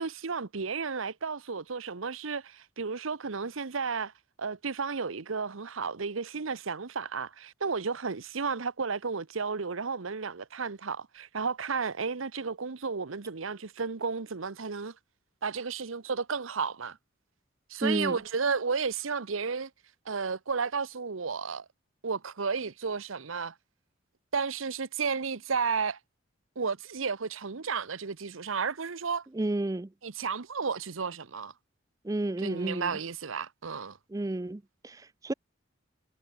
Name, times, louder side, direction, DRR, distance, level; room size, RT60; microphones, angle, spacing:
voice 1, 0.0-4.1 4.4-14.9 15.4-17.0 17.7-19.7 20.1-21.6 22.0-23.5 24.3-26.0 26.6-29.3 30.0-31.5 32.4-34.0, right 5 dB, 85° right, 0.9 m, -33 dB
voice 2, 17.8-18.2 29.3-29.9 32.0-32.9 34.1-35.3, right 2 dB, 15° right, 0.4 m, -31 dB
head